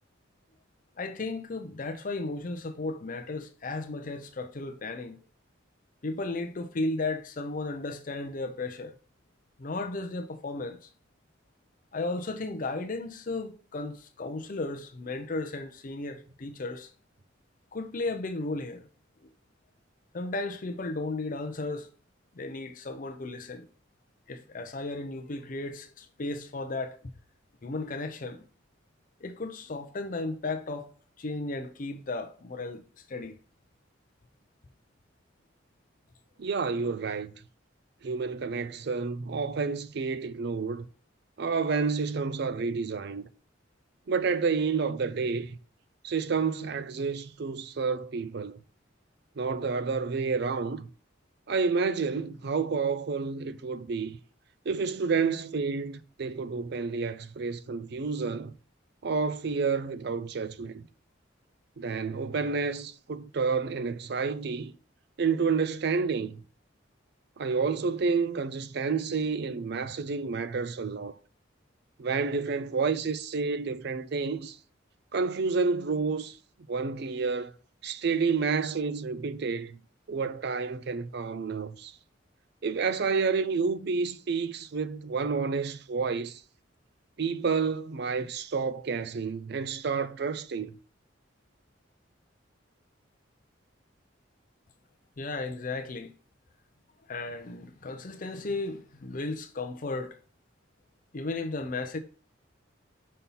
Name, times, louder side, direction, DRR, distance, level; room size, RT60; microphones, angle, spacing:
voice 1, 1.0-5.2 6.0-8.9 9.6-10.9 11.9-16.9 17.7-18.9 20.1-21.9 22.4-23.7 24.3-27.0 27.6-28.4 29.2-30.9 31.2-33.4 95.2-96.1 97.1-100.2 101.1-102.0, left 2 dB, 45° left, 0.5 m, -35 dB
voice 2, 36.4-37.3 38.0-40.9 41.4-43.3 44.1-45.6 46.0-48.6 49.4-50.9 51.5-54.1 54.7-58.5 59.0-60.8 61.8-64.7 65.2-66.4 67.4-71.1 72.0-74.6 75.1-76.4 76.7-77.5 77.8-79.8 80.1-81.9 82.6-86.4 87.2-90.7, right 5 dB, 55° right, 0.5 m, -29 dB
5.4 x 4.3 x 5.5 m
head